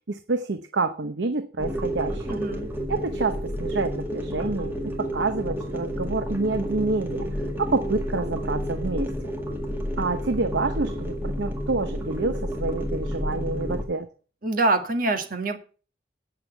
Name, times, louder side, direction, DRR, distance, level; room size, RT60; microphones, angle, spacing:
voice 1, 0.1-2.4 2.9-7.3 7.6-9.1 10.0-14.1, right 3 dB, 85° right, 9 dB, 0.8 m, -28 dB
sound 1, 1.6-13.8, equal, 10° right, 1.9 m, -30 dB
voice 2, 2.3-2.7 14.4-15.6, right 2 dB, 50° right, 6 dB, 1.9 m, -25 dB
8.8 x 6.7 x 7.9 m, 0.39 s
head